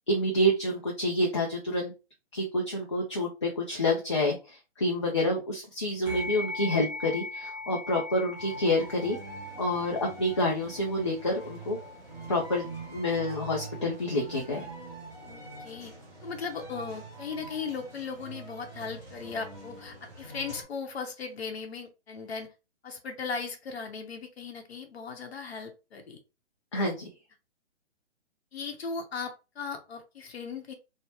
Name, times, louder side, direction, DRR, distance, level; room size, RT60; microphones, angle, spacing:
voice 1, 0.1-1.9 2.3-9.2 9.6-11.8 12.3-12.7 12.9-14.7 26.7-27.1, left 1 dB, 30° left, -2 dB, 0.3 m, -28 dB
sound 1, 6.1-15.7, left 2 dB, 20° right, 0.9 m, -42 dB
sound 2, 8.4-20.6, right 3 dB, 5° left, 1.0 m, -45 dB
voice 2, 15.2-15.9 16.2-22.5 22.8-26.2 28.5-30.7, left 5 dB, 65° left, 5 dB, 0.8 m, -37 dB
2.9 x 2.0 x 3.1 m, 0.29 s
hypercardioid pair, 150°, 35 cm